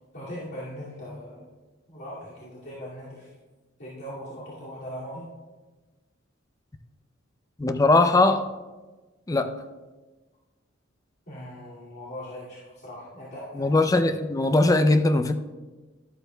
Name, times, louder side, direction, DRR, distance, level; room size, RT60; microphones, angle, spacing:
voice 1, 0.1-1.5 1.9-3.3 3.8-5.3 11.3-13.7, equal, 55° left, 2.3 m, -39 dB
voice 2, 7.6-8.5 9.3-9.5 13.5-15.3, left 2 dB, 20° left, 0.4 m, -20 dB
12.5 x 11.5 x 2.2 m
head